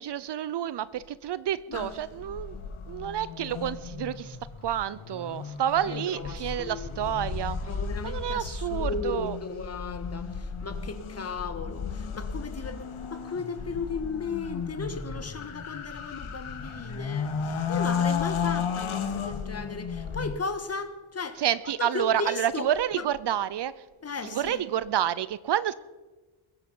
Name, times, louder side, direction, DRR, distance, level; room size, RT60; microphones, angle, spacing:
voice 1, 0.0-2.6 2.9-4.4 4.6-7.6 8.0-9.4 21.4-23.7 24.3-25.7, right 10 dB, 55° right, 18 dB, 0.6 m, -29 dB
sound 1, 1.7-20.3, left 6 dB, 80° left, 2.0 m, -34 dB
voice 2, 5.8-7.1 7.7-21.4 21.8-22.7 22.9-23.1 24.0-24.6, left 4 dB, 30° left, 9 dB, 1.4 m, -36 dB
21.5 x 11.0 x 5.5 m, 1.2 s
wide cardioid pair, 130°, 49 cm